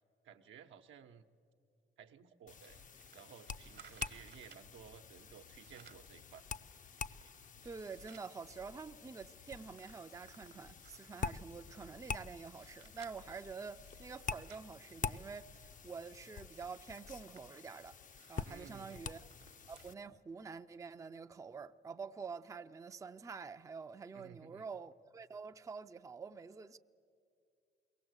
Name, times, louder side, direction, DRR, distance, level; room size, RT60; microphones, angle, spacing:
voice 1, 0.2-1.2 2.0-6.4 18.4-19.0 24.1-24.7, right 8 dB, 75° right, 0.9 m, -56 dB
sound 1, 2.5-19.9, left 6 dB, 40° left, 0.6 m, -47 dB
sound 2, 2.6-4.7 5.4-6.1 6.6-8.3 8.8-8.9 9.1-11.1 11.7-15.5 15.9-16.0 16.4-20.0 20.4-20.5 21.3-21.4, right 8 dB, 55° right, 1.1 m, -62 dB
voice 2, 7.6-18.0 18.3-19.3 19.7-26.8, right 5 dB, 15° right, 0.4 m, -47 dB
22.5 x 17.5 x 8.0 m
cardioid pair, 90°, 20 cm